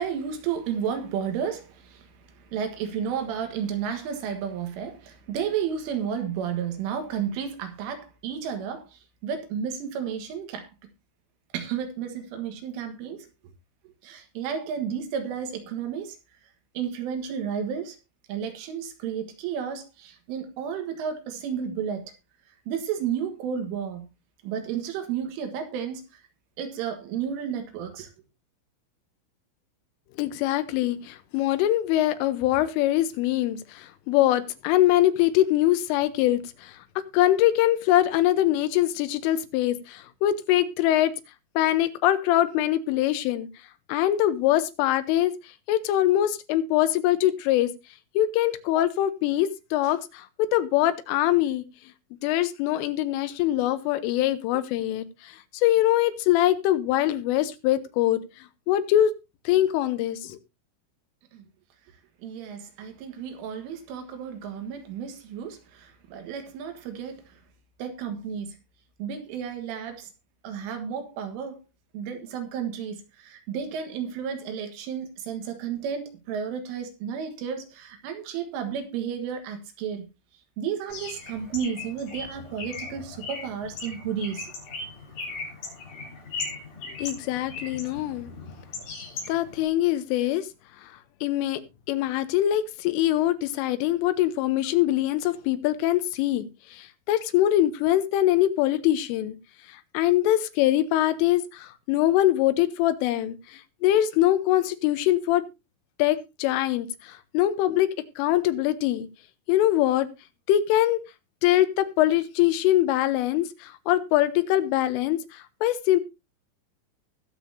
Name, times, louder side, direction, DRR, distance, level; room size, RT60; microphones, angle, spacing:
voice 1, 0.0-10.7 11.5-13.3 14.0-16.2 16.8-18.0 18.3-22.1 22.7-24.1 24.4-26.2 26.6-28.1 61.3-61.4 62.2-67.4 67.8-68.6 69.0-70.1 70.4-71.6 71.9-80.1 80.6-84.5, right 7 dB, 80° right, 4.0 m, -32 dB
voice 2, 30.2-36.7 37.1-41.2 41.6-43.5 43.9-45.3 45.7-47.7 48.2-51.6 52.2-58.2 58.7-59.1 59.5-60.4 87.0-88.3 89.3-90.5 91.2-91.6 91.9-96.5 96.7-99.4 100.0-105.5 106.0-109.1 109.5-110.1 110.5-111.0 111.4-116.0, left 13 dB, 90° left, 3.4 m, -23 dB
Bird, 80.9-89.7, left 3 dB, 55° left, 5.6 m, -38 dB
21.0 x 7.0 x 2.8 m
omnidirectional pair, 5.7 m